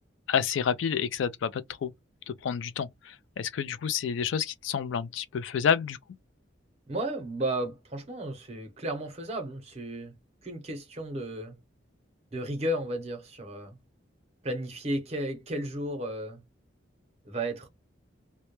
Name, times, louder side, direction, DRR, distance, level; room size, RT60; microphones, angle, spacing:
voice 1, 0.3-1.9 2.3-6.0, left 7 dB, 70° left, 0.3 m, -29 dB
voice 2, 6.9-10.2 10.4-11.6 12.3-13.8 14.4-16.4 17.3-17.7, right 1 dB, 30° right, 0.6 m, -33 dB
2.1 x 2.1 x 2.9 m
head